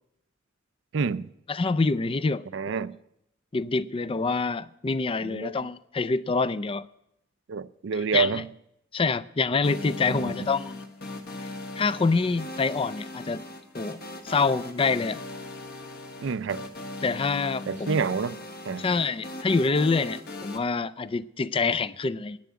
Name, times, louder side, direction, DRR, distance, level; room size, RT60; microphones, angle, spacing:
voice 1, 0.9-1.3 2.5-3.0 5.2-5.5 7.5-8.5 10.1-10.3 16.2-16.6 17.7-18.4 18.7-18.8, right 5 dB, 70° right, 0.4 m, -28 dB
voice 2, 1.5-2.8 3.5-6.9 7.9-8.4 8.9-10.8 11.8-13.4 13.7-15.2 17.0-18.0 18.8-22.4, left 4 dB, 30° left, 0.4 m, -26 dB
sound 1, 9.6-20.6, left 2 dB, 55° left, 1.3 m, -39 dB
10.5 x 9.4 x 9.2 m
head